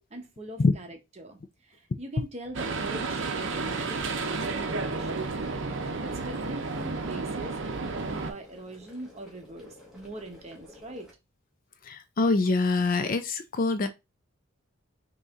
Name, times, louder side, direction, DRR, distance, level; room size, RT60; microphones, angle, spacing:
voice 1, 0.1-5.4 6.0-7.6 7.9-11.2, right 2 dB, 30° right, 0.9 m, -42 dB
sound 1, 2.5-8.3, right 3 dB, 60° right, 0.6 m, -32 dB
sound 2, 2.8-11.1, left 2 dB, ahead, 1.3 m, -53 dB
voice 2, 11.8-13.9, left 3 dB, 40° left, 0.4 m, -24 dB
4.0 x 3.0 x 3.6 m
head